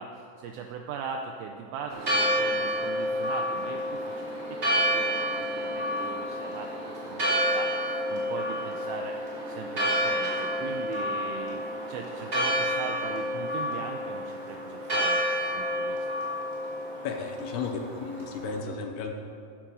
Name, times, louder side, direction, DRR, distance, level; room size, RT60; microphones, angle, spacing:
voice 1, 0.0-9.2 9.5-11.6 11.9-15.2 15.5-16.0, right 6 dB, 85° right, 3 dB, 2.1 m, -39 dB
sound 1, 1.9-12.2, right 3 dB, 60° left, 1.5 m, -47 dB
Church bell, 1.9-18.6, equal, 25° right, 1.2 m, -29 dB
voice 2, 17.0-19.2, left 5 dB, 80° left, 3 dB, 2.6 m, -34 dB
13.5 x 6.0 x 5.1 m, 2.5 s
omnidirectional pair, 4.8 m